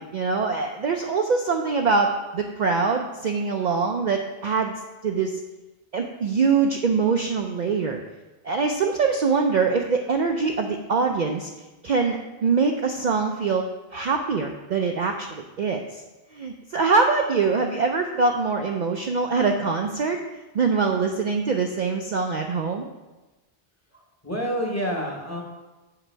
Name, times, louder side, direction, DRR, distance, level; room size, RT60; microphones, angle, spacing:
voice 1, 0.0-4.7 5.0-5.4 5.9-8.0 8.4-11.5 11.8-13.7 13.9-16.0 16.3-20.2 20.5-22.9, right 4 dB, 55° right, 3 dB, 0.5 m, -23 dB
voice 2, 23.9-25.4, equal, 15° left, -1 dB, 1.0 m, -29 dB
7.3 x 4.9 x 4.4 m, 1.1 s
omnidirectional pair, 1.1 m